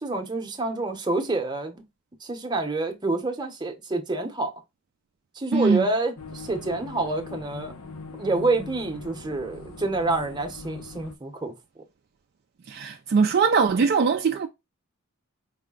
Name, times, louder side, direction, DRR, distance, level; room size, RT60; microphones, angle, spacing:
voice 1, 0.0-1.8 2.2-4.5 5.3-7.7 8.2-11.5, right 2 dB, 20° right, 0.8 m, -27 dB
voice 2, 5.5-5.9 12.7-14.5, right 5 dB, 45° right, 0.3 m, -21 dB
sound 1, 6.2-11.1, left 3 dB, 75° left, 0.8 m, -41 dB
4.8 x 2.1 x 3.7 m
head